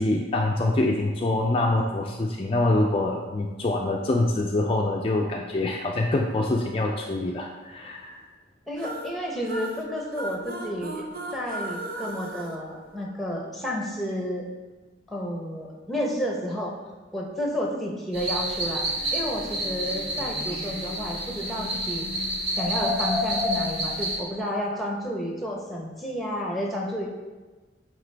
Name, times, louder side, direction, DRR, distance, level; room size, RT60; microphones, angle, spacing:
voice 1, 0.0-8.2, left 2 dB, 30° left, 0 dB, 0.4 m, -25 dB
voice 2, 8.7-14.5 15.1-16.7 17.1-18.8 19.1-22.1 22.6-27.1, equal, ahead, -1 dB, 0.9 m, -31 dB
sound 1, 8.8-13.5, right 1 dB, 55° right, 0.6 m, -37 dB
sound 2, 18.1-24.2, equal, 30° right, 1.1 m, -29 dB
8.8 x 3.5 x 3.3 m, 1.3 s
head